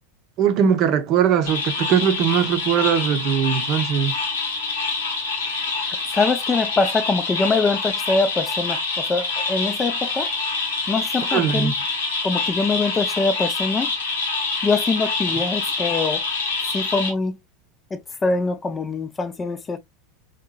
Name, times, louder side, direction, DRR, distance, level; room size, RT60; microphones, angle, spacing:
voice 1, 0.4-4.2 11.3-11.7, right 8 dB, 50° right, 0.6 m, -20 dB
sound 1, 1.5-17.1, left 4 dB, 80° left, 1.0 m, -26 dB
voice 2, 6.1-10.3 10.9-11.7 12.2-13.9 14.6-16.2 16.7-17.3 18.2-19.8, left 4 dB, 20° left, 0.4 m, -23 dB
3.6 x 2.8 x 2.2 m
hypercardioid pair, 90°, 0 cm